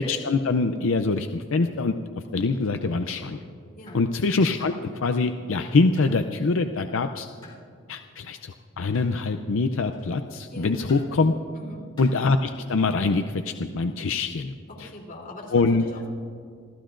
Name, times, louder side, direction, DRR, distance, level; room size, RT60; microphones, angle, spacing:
voice 1, 0.0-1.9 2.3-3.4 3.9-7.3 7.9-11.3 12.0-14.5 14.8-14.9 15.5-15.8, left 3 dB, 70° left, 7 dB, 0.5 m, -24 dB
sound 1, 2.8-3.0 3.9-4.1 4.6-4.9 6.0-6.2 7.4-7.7 8.9-9.2 9.9-10.2 10.9-11.2 12.0-12.3 13.4-13.7, left 3 dB, 20° left, 3.5 m, -50 dB
voice 2, 10.5-10.8 11.5-11.9 14.7-16.1, left 1 dB, 40° left, -3 dB, 3.2 m, -42 dB
26.5 x 15.5 x 2.6 m, 2.3 s
head